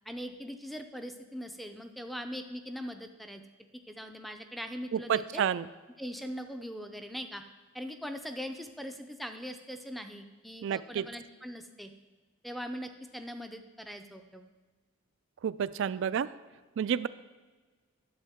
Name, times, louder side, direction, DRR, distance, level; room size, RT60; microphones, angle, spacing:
voice 1, 0.1-3.4 3.9-5.4 6.0-7.4 7.7-11.9 12.4-14.5, equal, ahead, 7 dB, 0.5 m, -41 dB
voice 2, 5.1-5.6 10.6-11.0 15.4-16.3 16.8-17.1, right 8 dB, 65° right, 17 dB, 0.3 m, -29 dB
11.5 x 7.3 x 3.6 m, 1.4 s
head